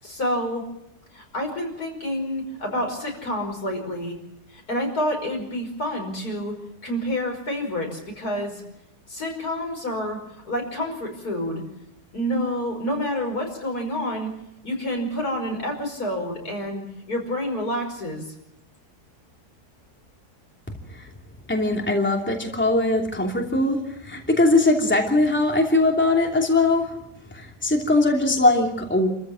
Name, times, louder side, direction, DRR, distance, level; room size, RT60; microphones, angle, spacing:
voice 1, 0.0-0.6 1.1-4.2 4.5-8.6 9.1-10.2 10.4-11.6 12.1-14.3 14.6-18.3, equal, 75° left, 2 dB, 5.9 m, -28 dB
voice 2, 21.5-27.0 27.3-29.1, left 2 dB, 5° left, 0 dB, 2.8 m, -21 dB
29.0 x 14.5 x 7.7 m, 0.85 s
omnidirectional pair, 1.7 m